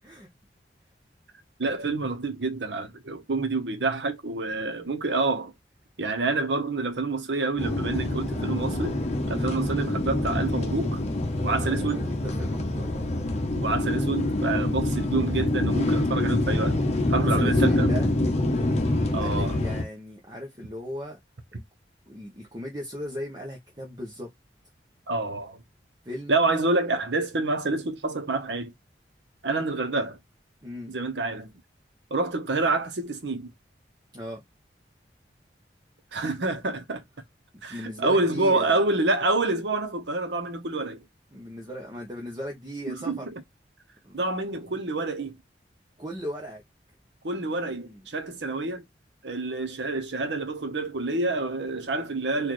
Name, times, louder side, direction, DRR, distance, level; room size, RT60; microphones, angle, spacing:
voice 1, 1.6-5.5 6.0-11.0 11.4-12.1 13.6-16.8 17.1-17.9 19.1-19.6 25.1-25.6 26.3-28.7 29.4-30.2 30.9-31.5 32.1-33.5 36.1-37.0 37.6-41.0 42.9-43.3 44.1-45.4 47.2-48.8 49.2-52.5, right 3 dB, 85° right, 1.0 m, -27 dB
sound 1, 7.6-19.8, left 1 dB, 40° left, 0.8 m, -26 dB
voice 2, 11.6-13.0 17.2-18.2 19.2-21.2 22.1-24.3 26.0-26.4 30.6-30.9 34.1-34.4 37.5-38.9 41.3-43.3 44.0-44.4 46.0-46.6 47.4-48.0, equal, 25° right, 1.0 m, -37 dB
4.2 x 2.6 x 3.1 m
head